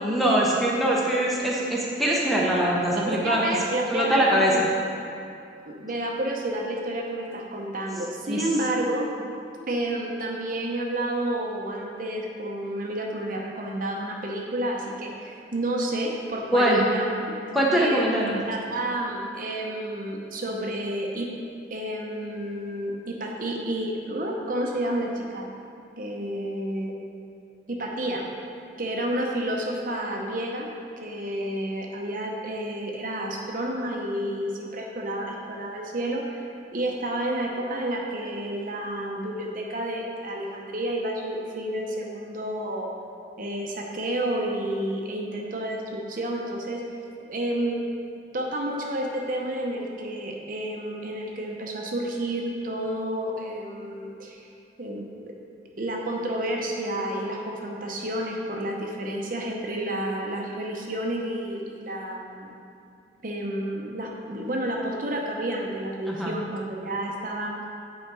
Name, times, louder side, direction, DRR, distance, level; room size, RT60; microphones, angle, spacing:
voice 1, 0.0-3.5 3.9-4.7 8.3-8.5 16.5-16.8 17.5-18.4 66.1-66.3, right 1 dB, ahead, -4 dB, 0.8 m, -22 dB
voice 2, 3.1-4.6 5.7-9.1 9.7-17.1 17.7-18.1 18.5-21.3 21.7-25.5 26.0-26.9 27.7-28.3 28.8-30.7 31.0-36.4 36.7-42.9 43.4-46.8 47.3-47.8 48.3-54.5 54.8-55.1 55.8-62.5 63.2-67.6, right 1 dB, 45° right, 0 dB, 0.8 m, -30 dB
8.2 x 4.9 x 4.7 m, 2.6 s
head